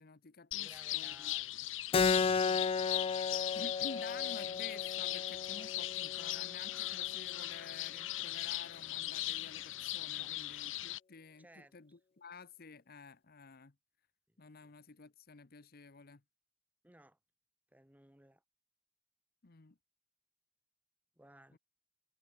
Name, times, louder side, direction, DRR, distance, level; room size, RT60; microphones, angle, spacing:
voice 1, 0.0-1.3 3.5-13.7 14.4-16.2 19.4-19.8 21.5-21.6, left 4 dB, 50° left, 1.0 m, -52 dB
sound 1, 0.5-11.0, left 16 dB, 80° left, 0.9 m, -39 dB
voice 2, 0.5-1.7 10.1-10.4 11.4-11.7 14.3-14.8 16.8-17.2 17.7-18.4 21.2-21.6, right 1 dB, 10° right, 1.9 m, -61 dB
Keyboard (musical), 1.9-7.0, left 5 dB, 30° left, 0.3 m, -34 dB
head